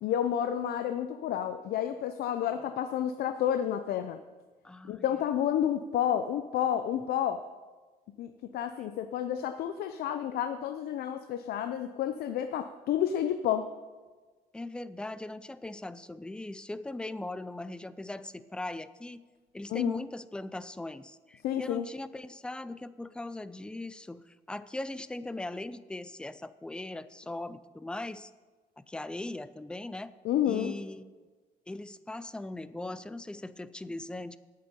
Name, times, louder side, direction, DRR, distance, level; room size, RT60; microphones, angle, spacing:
voice 1, 0.0-4.2 4.9-7.4 8.2-13.7 19.7-20.0 21.4-21.9 30.2-30.8, left 10 dB, 65° left, 9 dB, 0.6 m, -30 dB
voice 2, 4.6-5.0 14.5-19.2 19.5-28.3 28.8-30.1 30.4-31.1 31.7-34.4, left 2 dB, 5° left, 15 dB, 0.4 m, -39 dB
8.9 x 6.7 x 8.3 m, 1.3 s
cardioid pair, 110°, 17 cm